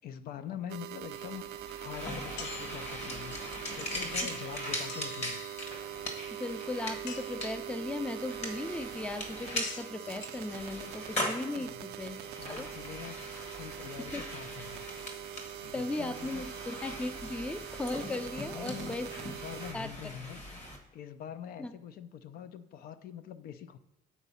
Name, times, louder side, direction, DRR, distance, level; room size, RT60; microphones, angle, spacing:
voice 1, 0.0-1.5 1.8-5.4 11.5-11.8 12.4-14.9 15.6-16.5 18.4-20.4 20.9-23.8, left 9 dB, 65° left, 12 dB, 0.5 m, -44 dB
sound 1, 0.7-19.7, right 13 dB, 70° right, 0.4 m, -43 dB
sound 2, 1.0-20.8, left 1 dB, 40° left, 1.5 m, -41 dB
sound 3, 2.4-3.4 4.9-6.0 7.1-7.8 9.6-10.2, left 6 dB, 90° left, 0.7 m, -46 dB
voice 2, 6.4-12.7 14.1-14.2 15.7-19.1 19.7-20.1 21.6-21.7, left 2 dB, 5° left, 11 dB, 0.4 m, -37 dB
7.2 x 4.0 x 5.5 m, 1.0 s
cardioid pair, 110°, 17 cm